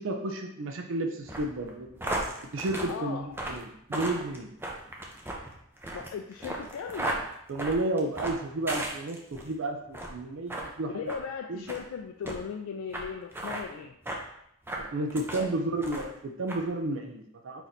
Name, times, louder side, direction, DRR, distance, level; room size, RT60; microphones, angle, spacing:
voice 1, 0.0-2.1 2.5-4.5 7.5-11.1 11.5-11.6 14.8-17.7, right 2 dB, 65° right, 4 dB, 0.5 m, -32 dB
sound 1, 1.2-9.5 9.9-10.2 10.5-10.7 11.1-11.2 11.7-11.8 12.2-12.4 12.9-13.0 13.3-13.6 14.1-14.2 14.6-15.5 15.8-16.2 16.5-16.6, right 1 dB, 10° right, 0.5 m, -35 dB
voice 2, 2.9-3.4 5.9-7.1 10.9-13.9 15.3-15.6, left 6 dB, 85° left, 4 dB, 0.3 m, -37 dB
4.5 x 2.6 x 4.1 m, 0.75 s
head